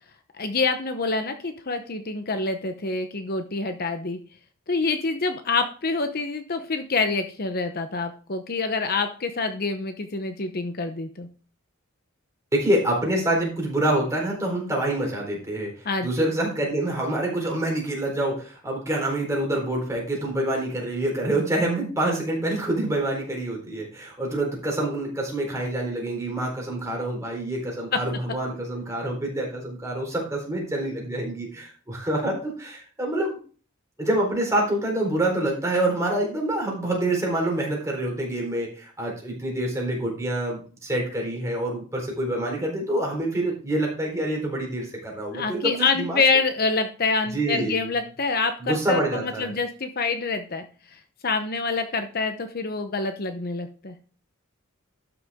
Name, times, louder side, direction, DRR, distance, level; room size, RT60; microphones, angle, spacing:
voice 1, 0.3-4.2 4.7-11.3 15.8-16.1 45.3-53.9, left 4 dB, 45° left, 7 dB, 0.9 m, -26 dB
voice 2, 12.5-33.4 34.0-46.2 47.3-47.9 48.6-49.5, right 1 dB, 15° right, -1 dB, 4.1 m, -26 dB
12.5 x 7.0 x 3.6 m, 0.39 s
head